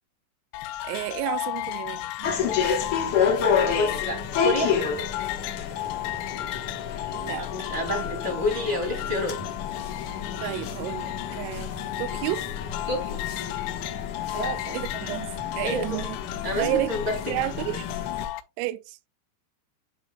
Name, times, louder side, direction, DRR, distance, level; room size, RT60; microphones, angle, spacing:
sound 1, 0.5-18.4, left 16 dB, 90° left, 3.3 m, -34 dB
voice 1, 0.8-2.3 7.1-7.7 10.4-11.7 12.0-12.5 14.7-16.2 16.6-16.9 17.3-17.9 18.6-19.1, right 16 dB, 90° right, 3.2 m, -31 dB
sound 2, 2.2-18.2, left 7 dB, 65° left, 1.9 m, -30 dB
voice 2, 3.6-4.8 7.4-9.4 12.9-13.3 14.3-15.1 15.6-15.9 16.4-17.4, left 1 dB, 25° right, 1.5 m, -29 dB
9.9 x 4.6 x 2.4 m
omnidirectional pair, 5.8 m